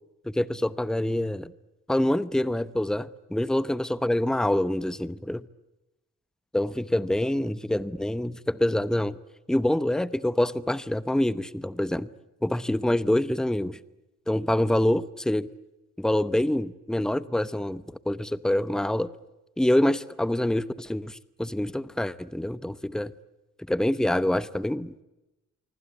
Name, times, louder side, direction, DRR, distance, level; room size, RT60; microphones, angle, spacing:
voice 1, 0.2-1.5 1.9-5.4 6.5-9.2 9.5-12.1 12.4-13.8 14.3-15.5 16.0-19.1 19.6-23.1 23.7-25.0, left 1 dB, ahead, 16 dB, 0.9 m, -26 dB
26.0 x 25.0 x 8.4 m, 0.99 s
wide cardioid pair, 110°, 29 cm